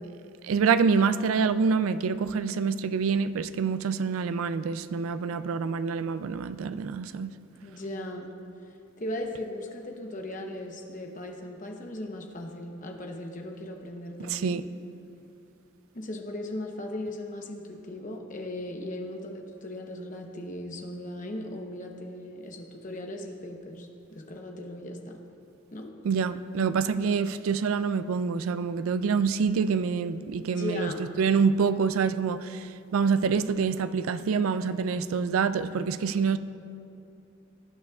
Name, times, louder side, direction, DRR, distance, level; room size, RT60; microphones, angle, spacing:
voice 1, 0.4-7.3 14.2-14.6 26.0-30.9 31.2-36.4, right 5 dB, 90° right, 0.4 m, -26 dB
voice 2, 7.6-8.3 9.0-14.6 15.9-25.2 25.7-25.9 30.6-31.0, left 1 dB, 40° left, 0.9 m, -37 dB
18.0 x 9.3 x 2.4 m
head